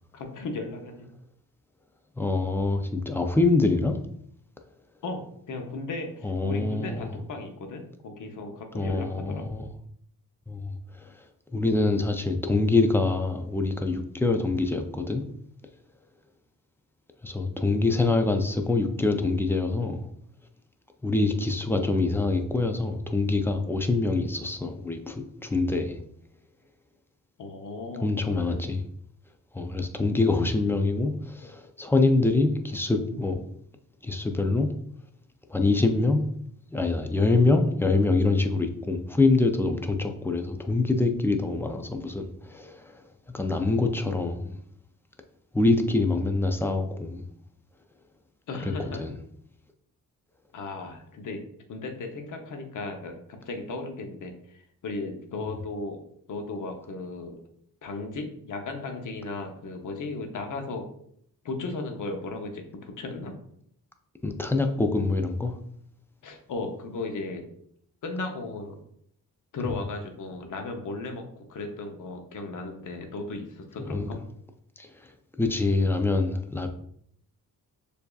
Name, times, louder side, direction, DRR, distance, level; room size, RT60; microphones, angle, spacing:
voice 1, 0.1-1.1 5.0-9.5 27.4-28.6 48.5-49.1 50.5-51.4 51.7-56.0 56.3-57.4 57.8-60.8 61.4-63.3 66.2-67.5 68.0-68.8 69.5-74.2, left 3 dB, 65° left, 4 dB, 0.8 m, -36 dB
voice 2, 2.2-4.0 6.2-7.1 8.7-9.7 10.5-10.7 11.5-15.2 17.2-20.0 21.0-26.0 28.0-28.8 29.5-33.4 34.0-34.7 35.5-36.2 36.7-42.9 43.3-44.6 45.5-47.2 49.0-49.1 64.2-65.5 69.6-69.7 73.9-74.1 74.8-74.9 75.4-76.7, left 3 dB, 5° left, 5 dB, 0.4 m, -25 dB
6.8 x 2.7 x 2.3 m, 0.67 s
cardioid pair, 120°, 34 cm